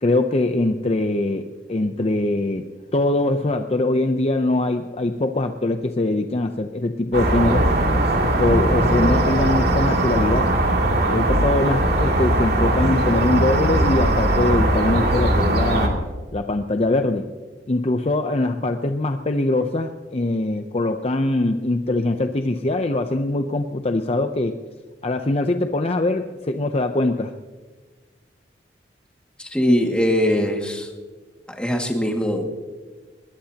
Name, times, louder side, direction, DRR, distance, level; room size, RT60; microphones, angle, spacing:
voice 1, 0.0-1.4 1.7-2.6 2.9-7.7 8.4-10.5 11.1-16.0 16.3-17.3 17.7-24.6 25.0-27.3, left 2 dB, 35° left, 6 dB, 0.6 m, -22 dB
sound 1, 7.1-15.9, right 1 dB, 55° right, 2.7 m, -19 dB
voice 2, 29.4-30.9 31.5-32.5, equal, 5° left, 1 dB, 2.1 m, -21 dB
20.5 x 20.5 x 2.9 m, 1.4 s
head